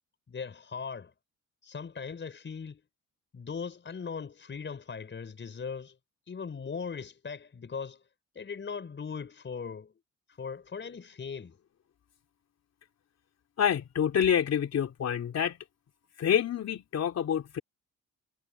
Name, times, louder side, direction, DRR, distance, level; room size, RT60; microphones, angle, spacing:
voice 1, 0.3-1.1 1.6-2.8 3.3-6.0 6.3-8.0 8.3-9.9 10.3-11.6, left 5 dB, 40° left, 5.5 m, -39 dB
voice 2, 13.6-15.6 16.2-17.6, left 8 dB, 60° left, 2.9 m, -27 dB
cardioid pair, 90°, 30 cm